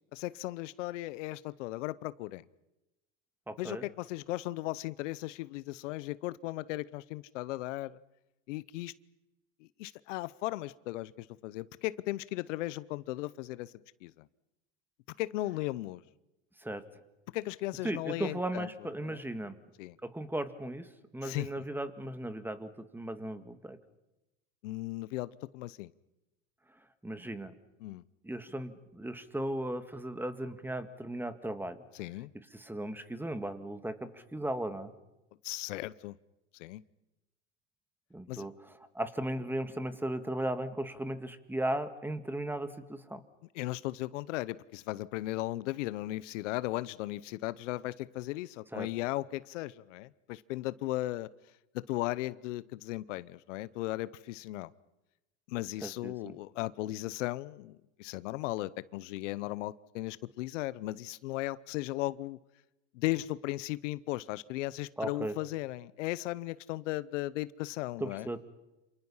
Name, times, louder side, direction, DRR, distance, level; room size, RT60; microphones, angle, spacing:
voice 1, 0.1-2.4 3.6-8.0 8.5-8.9 9.8-13.7 14.0-14.2 15.2-16.0 17.3-18.7 19.0-19.2 19.8-20.0 21.2-21.6 24.6-25.9 27.8-28.0 32.0-32.3 35.4-36.2 36.5-36.8 38.3-38.5 43.5-51.3 51.7-54.7 55.5-62.4 62.9-68.3, left 17 dB, 75° left, 18 dB, 0.9 m, -36 dB
voice 2, 3.5-3.9 16.6-16.9 17.8-19.6 20.0-23.8 27.0-27.5 28.2-31.8 32.3-34.9 38.1-43.2 48.7-48.9 55.8-56.4 65.0-65.3 68.0-68.4, right 1 dB, 5° right, 10 dB, 1.9 m, -36 dB
28.0 x 28.0 x 5.7 m, 0.97 s
supercardioid pair, 110°, 37 cm